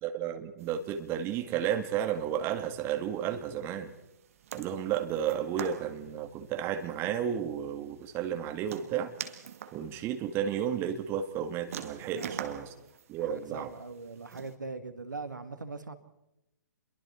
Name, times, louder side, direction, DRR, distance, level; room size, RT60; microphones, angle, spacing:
voice 1, 0.0-3.9 4.5-9.1 9.7-12.7 13.1-13.7, right 9 dB, 25° right, 7 dB, 2.0 m, -32 dB
sound 1, 0.6-14.5, right 9 dB, 45° right, 1.9 m, -47 dB
voice 2, 12.0-12.6 13.2-15.9, right 3 dB, 75° right, 9 dB, 2.0 m, -41 dB
28.0 x 23.0 x 4.4 m, 0.88 s
figure-of-eight pair, 125°, 10 cm